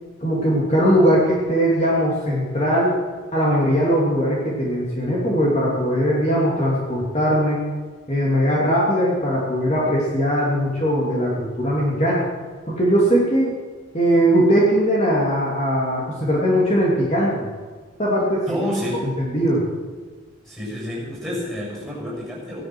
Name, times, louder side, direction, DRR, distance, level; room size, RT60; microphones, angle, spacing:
voice 1, 0.2-3.0 3.3-7.7 8.1-12.3 12.7-13.5 13.9-17.5 18.0-18.6 19.2-19.7, equal, 30° left, -5 dB, 2.9 m, -20 dB
voice 2, 18.5-19.2 20.4-22.6, equal, ahead, -3 dB, 6.3 m, -29 dB
17.0 x 12.5 x 6.3 m, 1.5 s
head